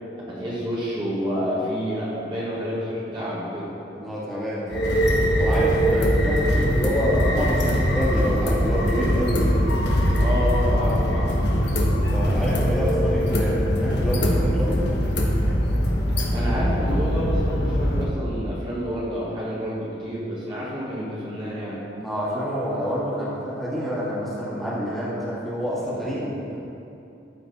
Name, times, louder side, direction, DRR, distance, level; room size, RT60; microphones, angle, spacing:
voice 1, 0.3-3.7 5.8-6.1 10.2-11.3 16.3-21.9, equal, 25° right, -7 dB, 1.7 m, -29 dB
voice 2, 3.9-5.0 5.4-9.6 12.0-14.9 22.0-26.6, equal, ahead, -8 dB, 2.0 m, -27 dB
sound 1, 4.7-18.0, equal, 65° left, 1.2 m, -22 dB
13.5 x 5.8 x 4.2 m, 2.7 s
head